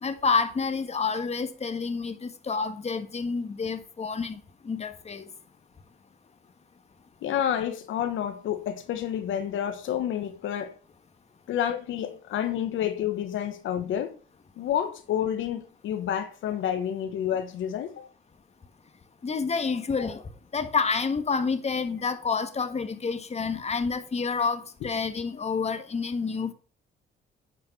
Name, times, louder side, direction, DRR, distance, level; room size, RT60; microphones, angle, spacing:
voice 1, 0.0-5.3 19.2-20.2 20.5-26.5, left 5 dB, 35° left, 1.4 m, -29 dB
voice 2, 7.2-10.7 11.5-14.2 14.6-18.1, left 10 dB, 80° left, 1.2 m, -29 dB
10.0 x 4.9 x 6.0 m
cardioid pair, 90°, 20 cm